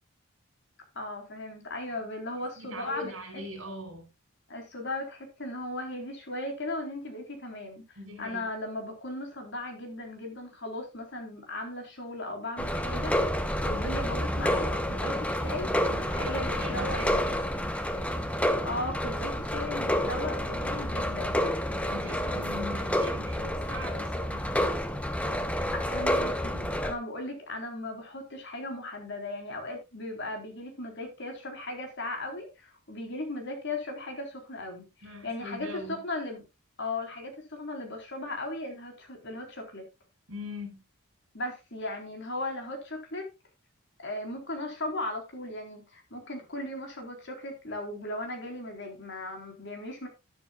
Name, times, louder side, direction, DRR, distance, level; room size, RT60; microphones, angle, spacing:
voice 1, 0.9-3.1 4.5-7.8 8.2-15.7 16.1-17.4 18.6-21.5 25.7-36.4 36.8-39.9 41.3-43.3 44.0-50.1, left 2 dB, 55° left, 3.9 m, -37 dB
voice 2, 2.6-4.1 8.0-8.5 15.9-18.1 21.9-24.5 35.0-36.0 40.3-40.8, left 1 dB, 65° right, 5.0 m, -41 dB
sound 1, 12.6-26.9, equal, 5° left, 0.9 m, -29 dB
12.0 x 12.0 x 2.4 m
head